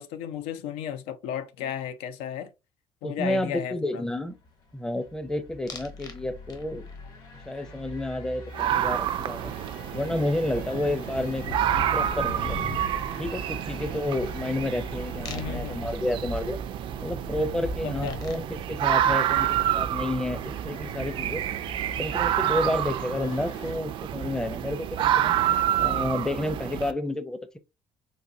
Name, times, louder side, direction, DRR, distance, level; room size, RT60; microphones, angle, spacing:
voice 1, 0.0-2.5 3.0-4.0 15.3-15.8 17.8-18.2, left 9 dB, 90° left, 0.4 m, -34 dB
voice 2, 3.0-4.4 4.7-6.9 7.5-9.5 9.9-12.6 13.2-16.6 17.0-21.4 22.0-25.4 25.8-27.6, left 1 dB, 5° left, 0.5 m, -30 dB
sound 1, 4.1-23.7, left 1 dB, 60° left, 1.9 m, -46 dB
sound 2, 5.7-6.2 6.5-7.0 9.4-9.5 9.7-19.8, left 3 dB, 40° left, 0.8 m, -40 dB
sound 3, 8.5-26.9, right 11 dB, 55° right, 0.3 m, -28 dB
4.0 x 2.6 x 2.6 m
cardioid pair, 105°, 10 cm